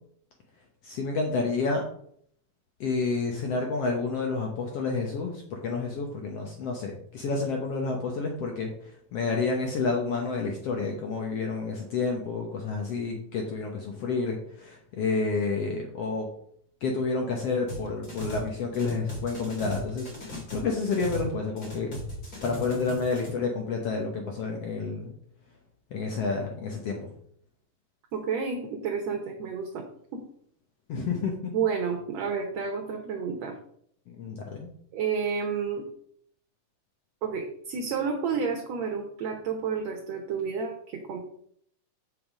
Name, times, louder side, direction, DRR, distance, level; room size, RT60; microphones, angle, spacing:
voice 1, 0.8-1.8 2.8-16.3 16.8-22.0 22.4-25.1 25.9-27.1 30.9-31.5 34.1-34.7, left 4 dB, 60° left, 1 dB, 1.8 m, -30 dB
sound 1, 17.7-18.5 18.7-21.3 21.6-23.3, left 1 dB, 30° left, 2.7 m, -37 dB
voice 2, 28.1-29.8 30.1-30.2 31.5-33.6 34.9-35.9 37.2-41.2, right 6 dB, 65° right, 1 dB, 2.0 m, -30 dB
7.7 x 5.7 x 5.1 m, 0.65 s
omnidirectional pair, 3.6 m